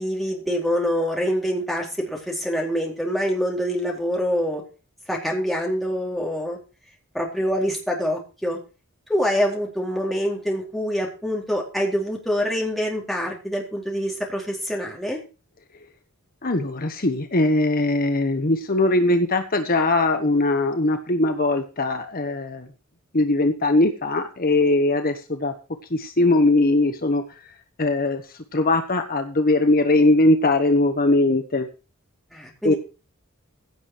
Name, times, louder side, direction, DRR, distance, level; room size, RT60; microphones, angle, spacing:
voice 1, 0.0-4.6 5.1-6.6 7.1-8.6 9.1-15.2 32.3-32.8, equal, ahead, -2 dB, 4.1 m, -25 dB
voice 2, 16.4-22.7 23.1-25.5 25.9-27.2 27.8-28.2 28.5-31.7 32.6-32.7, left 2 dB, 40° left, 6 dB, 1.3 m, -20 dB
16.5 x 7.3 x 4.7 m, 0.32 s
head